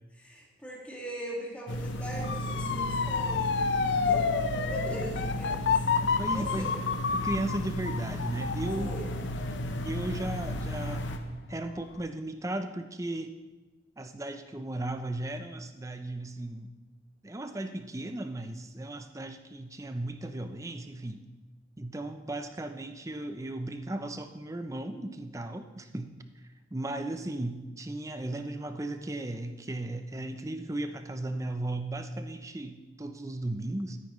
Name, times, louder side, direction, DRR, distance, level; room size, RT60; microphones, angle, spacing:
voice 1, 0.1-3.7 4.1-5.8 6.2-6.7 8.8-9.1, right 1 dB, 5° left, -4 dB, 2.0 m, -40 dB
sound 1, 1.7-11.2, equal, 85° left, 0.8 m, -34 dB
Motor vehicle (road) / Siren, 2.2-11.1 11.6-12.0, left 5 dB, 65° left, 0.5 m, -30 dB
voice 2, 5.9-6.7 7.1-9.0 9.8-11.1 11.5-13.3 14.0-16.8 17.2-21.3 21.8-26.1 26.7-34.0, right 1 dB, 15° right, 8 dB, 0.5 m, -36 dB
13.0 x 9.7 x 3.1 m, 1.2 s
head